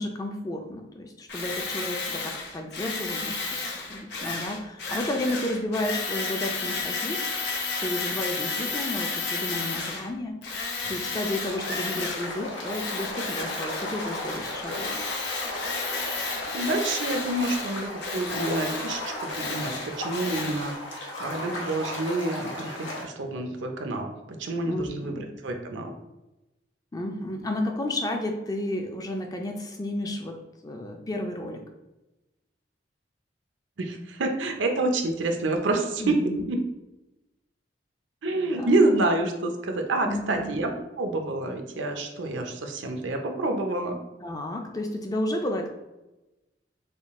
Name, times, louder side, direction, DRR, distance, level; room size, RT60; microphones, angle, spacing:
voice 1, 0.0-7.2 7.8-10.4 10.8-15.0 24.6-25.3 26.9-30.4 30.6-31.6 36.0-36.4 38.5-38.7 40.0-40.6 44.2-45.7, left 1 dB, 20° left, 3 dB, 0.4 m, -32 dB
Tools, 1.3-10.1 10.4-12.4 12.6-20.7, left 4 dB, 65° left, 0.7 m, -32 dB
sound 1, 11.4-23.0, left 1 dB, 85° left, 1.0 m, -35 dB
voice 2, 16.1-24.1 24.4-25.9 33.8-36.2 36.5-36.6 38.2-44.0, right 2 dB, 80° right, 4 dB, 0.6 m, -28 dB
3.7 x 2.3 x 3.5 m, 1.0 s
head